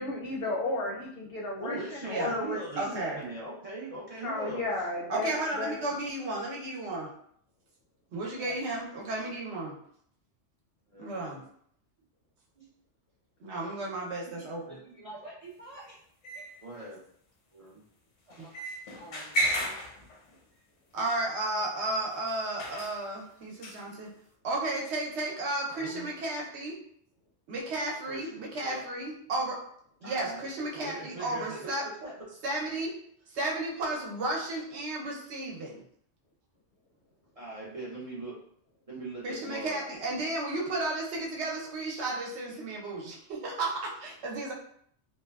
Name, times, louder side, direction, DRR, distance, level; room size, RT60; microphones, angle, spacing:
voice 1, 0.0-3.2 4.2-5.8, left 2 dB, 65° left, -2 dB, 0.7 m, -34 dB
voice 2, 1.6-4.7 5.0-5.2 8.4-8.6 10.9-11.4 12.6-12.7 14.2-16.0 16.3-17.0 17.5-17.8 18.3-18.5 19.0-19.7 25.7-26.1 28.1-28.8 30.0-31.7 32.0-32.1 37.4-38.4 38.9-39.9, right 2 dB, 45° right, -8 dB, 0.5 m, -42 dB
voice 3, 2.8-3.2 5.1-7.1 8.1-9.8 11.0-11.4 13.4-14.8 18.4-18.5 20.9-24.1 24.4-26.8 27.5-29.6 30.0-31.8 32.4-32.9 33.3-35.8 39.2-44.5, right 2 dB, 70° right, -2 dB, 0.9 m, -33 dB
sound 1, 16.2-16.6 18.3-20.4 21.0-21.1 22.3-22.4 22.6-23.0 23.6-23.8, right 1 dB, 85° left, 0.9 m, -33 dB
2.9 x 2.1 x 2.2 m, 0.64 s
omnidirectional pair, 1.2 m